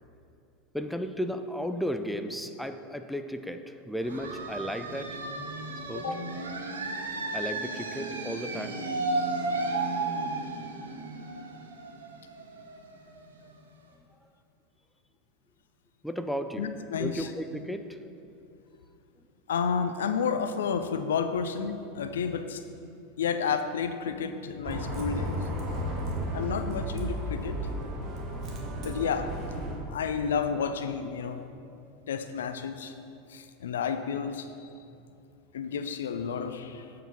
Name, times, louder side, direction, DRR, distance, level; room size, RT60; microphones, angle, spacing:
voice 1, 0.7-5.2 5.9-6.2 7.3-8.8 16.0-16.7 17.0-18.0, equal, ahead, 8 dB, 0.4 m, -34 dB
sound 1, 4.0-13.5, right 3 dB, 75° right, 0.8 m, -34 dB
voice 2, 5.9-6.2 16.6-17.3 19.5-22.6 23.2-25.5 26.3-27.6 28.8-29.3 29.9-31.4 32.1-32.9 33.3-34.8 35.5-36.9, left 6 dB, 70° left, 9 dB, 0.4 m, -31 dB
Bus, 24.6-29.8, equal, 40° right, 1.4 m, -33 dB
7.8 x 4.7 x 5.9 m, 2.6 s
figure-of-eight pair, 80°, 0 cm